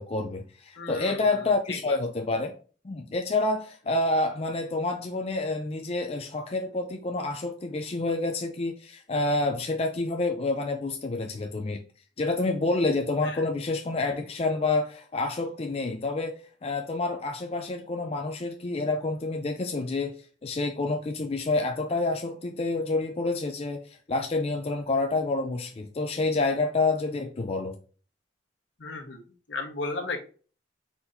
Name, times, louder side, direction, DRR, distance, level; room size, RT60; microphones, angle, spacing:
voice 1, 0.0-2.6 2.8-11.8 12.2-27.8, left 2 dB, 30° left, 0.4 m, -28 dB
voice 2, 0.8-2.0 13.2-13.4 28.8-30.2, left 3 dB, 75° left, 1.1 m, -36 dB
4.3 x 4.2 x 2.6 m
head